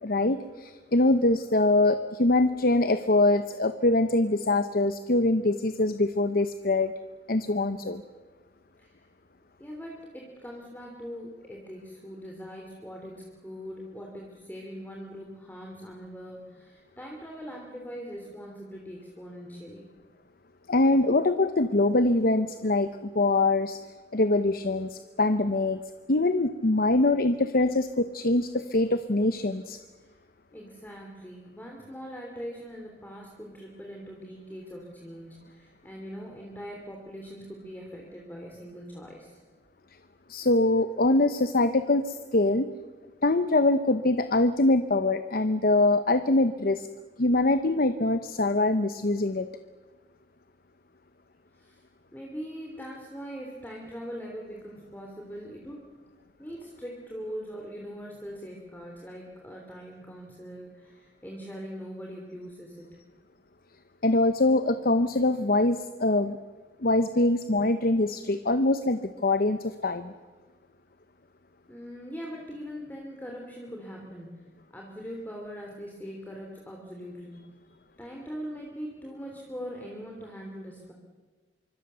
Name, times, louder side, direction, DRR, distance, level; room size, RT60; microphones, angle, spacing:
voice 1, 0.0-6.9 7.3-8.0 20.7-23.8 24.1-25.8 26.1-29.8 40.3-42.7 43.2-46.9 47.2-49.5 64.0-66.4 66.8-70.1, left 2 dB, 55° left, 11 dB, 0.9 m, -24 dB
voice 2, 9.6-19.9 30.0-30.2 30.5-39.4 51.5-51.8 52.1-55.9 56.4-63.0 71.7-77.5 78.0-80.9, equal, 10° left, 0 dB, 3.2 m, -41 dB
25.5 x 24.5 x 6.9 m, 1.4 s
head